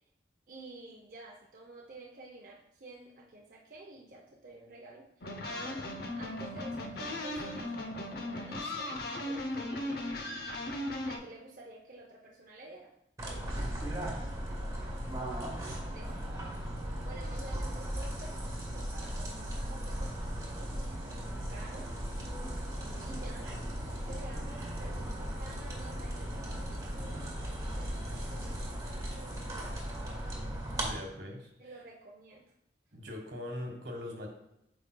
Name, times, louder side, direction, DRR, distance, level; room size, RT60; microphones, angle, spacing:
voice 1, 0.5-5.9 6.2-10.2 11.0-12.9 13.2-13.7 14.1-15.1 15.9-16.5 17.0-18.4 18.7-21.9 23.0-23.6 23.8-28.0 28.3-28.8 29.1-29.7 31.6-32.5, right 2 dB, 50° right, -2 dB, 0.6 m, -51 dB
sound 1, 5.2-11.2, left 1 dB, 60° left, 0.7 m, -37 dB
sound 2, 13.2-30.9, equal, 20° right, 1.2 m, -37 dB
Aircraft, 21.9-28.6, left 1 dB, 75° left, 1.9 m, -48 dB
voice 2, 30.8-31.5 32.9-34.3, left 1 dB, 80° right, 2 dB, 1.4 m, -41 dB
8.4 x 5.1 x 2.2 m, 0.81 s
head